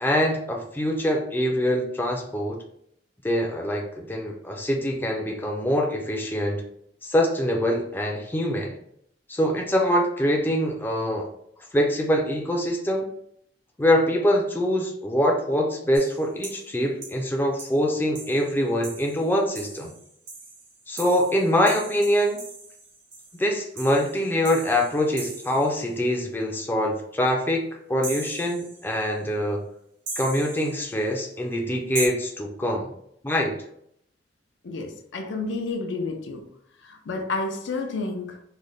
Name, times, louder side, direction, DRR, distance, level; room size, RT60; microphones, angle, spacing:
voice 1, 0.0-2.6 3.2-6.6 7.0-8.8 9.3-11.3 11.7-13.1 13.8-19.9 20.9-22.4 23.4-29.6 30.2-32.9 33.2-33.6, equal, 10° left, 0.4 m, -24 dB
sound 1, 15.9-16.7 17.0-17.2 17.6-17.8 18.1-25.9 28.0-29.1 30.1-31.1 31.9-32.1, right 3 dB, 85° right, 1.2 m, -39 dB
voice 2, 34.6-36.5 36.8-38.4, left 3 dB, 80° left, 0.5 m, -30 dB
3.2 x 2.1 x 3.8 m
head